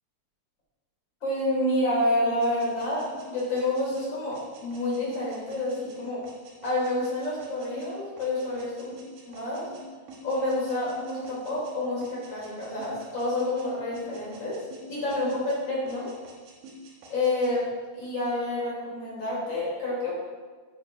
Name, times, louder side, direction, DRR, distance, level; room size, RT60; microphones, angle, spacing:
voice 1, 1.2-6.2 6.6-8.9 9.2-9.7 10.2-16.1 17.1-17.7 17.9-20.2, left 1 dB, 30° left, -7 dB, 3.5 m, -28 dB
sound 1, 2.4-11.8 12.0-13.7 13.9-15.6 15.9-17.5, right 1 dB, 65° right, 2.8 m, -48 dB
9.5 x 5.7 x 5.0 m, 1.5 s
omnidirectional pair, 4.6 m